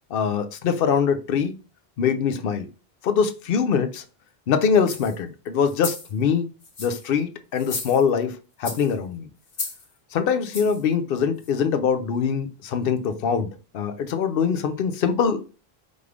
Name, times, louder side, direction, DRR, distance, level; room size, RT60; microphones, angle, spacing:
voice 1, 0.1-1.5 2.0-2.7 3.0-4.0 4.5-6.5 6.8-9.3 10.1-15.5, left 6 dB, 60° left, 8 dB, 0.8 m, -23 dB
sound 1, 4.8-5.2 5.7-6.1 6.6-7.1 7.5-8.2 8.6-8.9 9.5-9.9 10.5-10.8 11.4-11.5, left 3 dB, 80° left, 1.4 m, -34 dB
5.2 x 3.3 x 2.4 m, 0.33 s
omnidirectional pair, 1.1 m